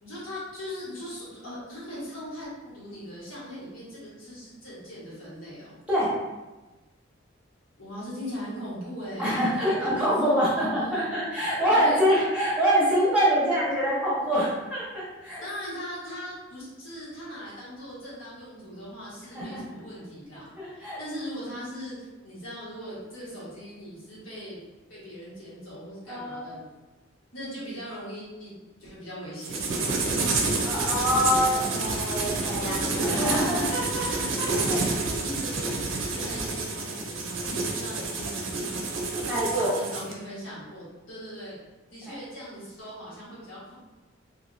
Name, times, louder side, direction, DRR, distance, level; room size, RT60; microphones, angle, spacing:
voice 1, 0.0-5.7 7.8-11.2 11.7-12.0 15.4-22.0 22.2-24.6 24.9-26.6 27.3-29.9 32.6-33.8 34.1-34.8 35.2-39.3 39.6-41.6 41.9-43.7, equal, 75° left, -9 dB, 1.4 m, -40 dB
voice 2, 9.2-15.4 19.3-19.8 20.6-21.0 26.1-26.6 30.6-34.8 39.3-39.7, equal, 5° right, -10 dB, 1.0 m, -25 dB
sound 1, 29.4-40.1, right 3 dB, 80° right, 0.5 m, -29 dB
2.9 x 2.6 x 2.6 m, 1.1 s
head